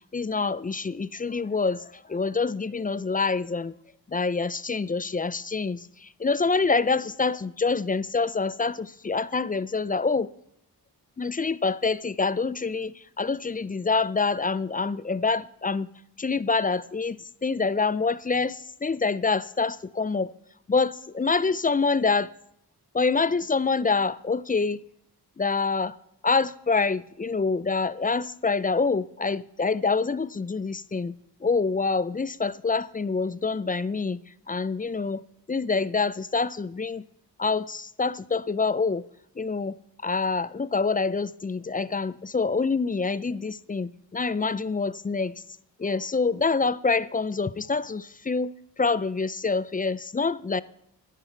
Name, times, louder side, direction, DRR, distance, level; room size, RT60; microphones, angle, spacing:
voice 1, 0.1-3.7 4.1-10.3 11.2-15.9 16.2-20.3 20.7-22.3 22.9-24.8 25.4-26.0 26.2-31.1 31.4-34.2 34.5-35.2 35.5-37.0 37.4-39.0 39.4-39.8 40.0-45.4 45.8-48.5 48.8-50.6, left 4 dB, 20° left, 0.4 m, -26 dB
12.0 x 10.5 x 4.5 m
cardioid pair, 50°, 42 cm